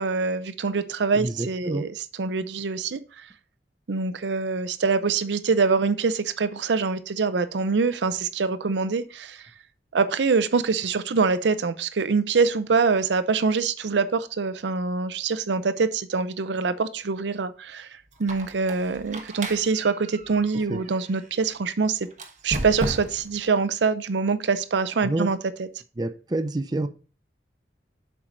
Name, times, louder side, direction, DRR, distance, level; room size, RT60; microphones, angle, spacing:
voice 1, 0.0-1.9 2.2-3.2 3.9-9.4 9.9-22.1 22.4-25.4, right 4 dB, 90° right, 0.6 m, -24 dB
voice 2, 1.1-1.8 20.7-20.8 25.0-25.3 26.0-26.9, right 2 dB, 25° right, 0.5 m, -28 dB
Squeak, 18.1-21.3 22.1-23.4, right 1 dB, 45° right, 1.0 m, -35 dB
7.4 x 4.6 x 3.9 m
head